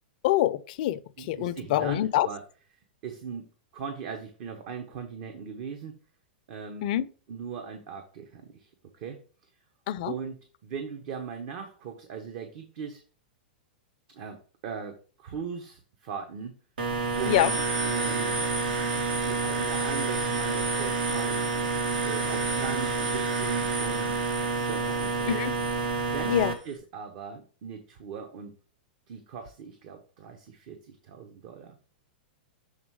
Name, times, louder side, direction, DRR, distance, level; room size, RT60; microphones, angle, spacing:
voice 1, 0.2-2.3 6.8-7.1 9.9-10.1 17.3-17.5 25.3-25.5 26.3-26.5, left 14 dB, 55° left, 0.5 m, -25 dB
voice 2, 1.2-2.4 3.0-3.5 3.7-6.0 6.5-6.9 7.3-9.2 10.0-13.0 14.1-16.5 17.1-18.3 19.0-21.4 22.1-24.1 24.7-25.4 26.1-28.5 29.1-31.8, right 6 dB, 55° right, 1.1 m, -39 dB
sound 1, 16.8-26.5, right 3 dB, 75° right, 1.4 m, -28 dB
7.2 x 3.7 x 4.7 m
hypercardioid pair, 120°, 5 cm